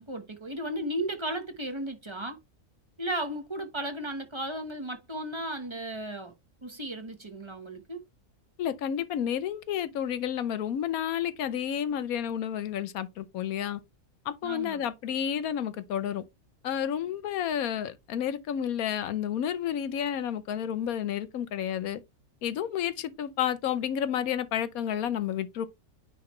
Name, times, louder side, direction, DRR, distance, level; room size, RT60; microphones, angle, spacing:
voice 1, 0.0-2.4 3.0-6.3 6.6-8.0 14.4-14.8, right 1 dB, 20° right, 1.1 m, -35 dB
voice 2, 8.6-13.8 14.2-16.2 16.6-22.0 22.4-25.7, left 9 dB, 75° left, 1.2 m, -31 dB
9.7 x 3.4 x 3.1 m
omnidirectional pair, 1.6 m